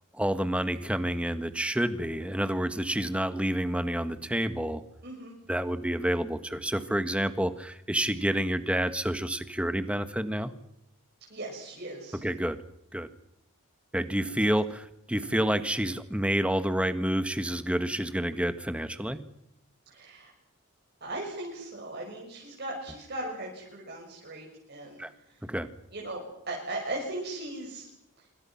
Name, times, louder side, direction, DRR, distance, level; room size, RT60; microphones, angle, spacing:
voice 1, 0.1-4.8 5.5-10.5 12.2-12.6 12.9-13.1 13.9-19.2 25.0-25.1 25.5-25.7, right 1 dB, 5° right, 10 dB, 1.5 m, -29 dB
voice 2, 5.0-5.4 11.3-12.2 19.9-20.3 21.0-25.0 25.3-25.4 25.9-27.9 28.2-28.3, right 2 dB, 50° right, -2 dB, 6.4 m, -38 dB
26.5 x 25.5 x 5.9 m, 0.79 s
head